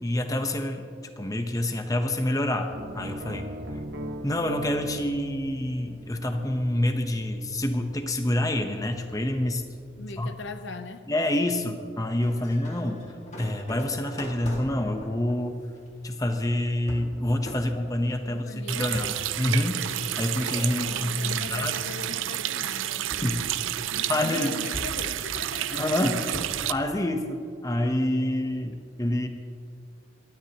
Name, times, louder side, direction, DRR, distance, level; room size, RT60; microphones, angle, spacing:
voice 1, 0.0-0.9 1.2-3.5 4.2-9.6 10.2-10.3 11.1-13.1 13.4-15.6 16.0-19.9 20.2-21.7 23.2-23.5 24.1-24.5 25.7-26.3 26.7-29.3, left 1 dB, 20° left, 5 dB, 0.9 m, -27 dB
sound 1, 2.7-10.6, equal, 60° right, 1.1 m, -41 dB
voice 2, 10.0-11.1 18.3-18.9 20.8-23.1 23.9-26.7, left 4 dB, 65° left, 9 dB, 0.6 m, -41 dB
sound 2, 12.2-21.4 21.7-22.4 23.1-24.2 24.7-26.8, equal, 35° left, 2.0 m, -42 dB
Water tap faucet, 18.7-26.7, right 12 dB, 80° right, 0.5 m, -30 dB
28.0 x 12.5 x 3.0 m, 2.3 s
head